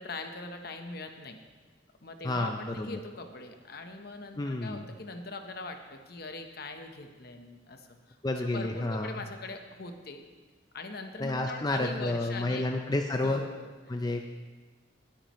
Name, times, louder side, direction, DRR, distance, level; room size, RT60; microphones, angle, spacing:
voice 1, 0.0-1.4 2.0-10.2 10.7-12.7 13.2-13.7, left 2 dB, 55° left, 6 dB, 1.0 m, -41 dB
voice 2, 2.2-3.0 4.4-4.9 8.2-9.2 11.2-13.4 13.9-14.3, left 2 dB, 20° left, 4 dB, 0.5 m, -30 dB
19.5 x 8.6 x 3.1 m, 1.3 s
head